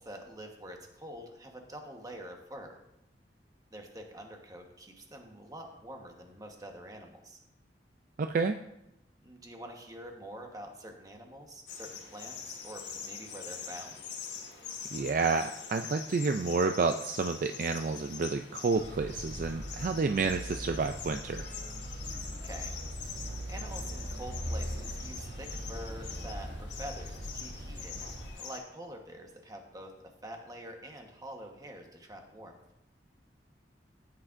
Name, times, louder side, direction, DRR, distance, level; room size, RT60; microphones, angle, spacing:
voice 1, 0.0-2.8 3.7-7.4 9.2-14.0 22.3-22.7 23.5-28.0 28.4-29.9 30.2-32.6, right 1 dB, 20° right, 3 dB, 1.2 m, -46 dB
voice 2, 8.2-8.6 14.9-21.4, right 4 dB, 50° right, 7 dB, 0.3 m, -30 dB
sound 1, 11.7-28.6, left 6 dB, 80° left, 1.6 m, -44 dB
Motor vehicle (road), 18.7-28.3, equal, 90° right, 3.3 m, -40 dB
14.0 x 8.6 x 2.6 m, 0.87 s
head